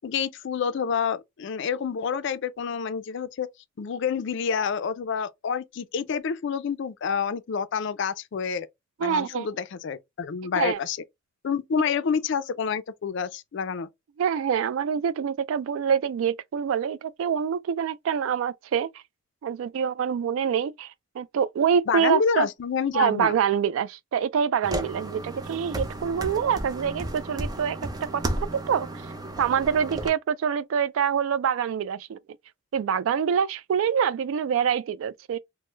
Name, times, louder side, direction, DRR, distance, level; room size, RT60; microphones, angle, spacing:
voice 1, 0.0-3.5 3.8-8.7 9.0-11.0 11.4-13.9 21.9-23.4, left 6 dB, 60° left, 0.4 m, -28 dB
voice 2, 9.0-9.5 10.5-10.8 14.2-18.9 19.4-22.5 22.9-28.9 29.4-32.2 32.7-35.4, right 7 dB, 80° right, 0.3 m, -26 dB
sound 1, 24.6-30.1, right 1 dB, 20° right, 0.5 m, -33 dB
3.1 x 2.0 x 3.2 m
head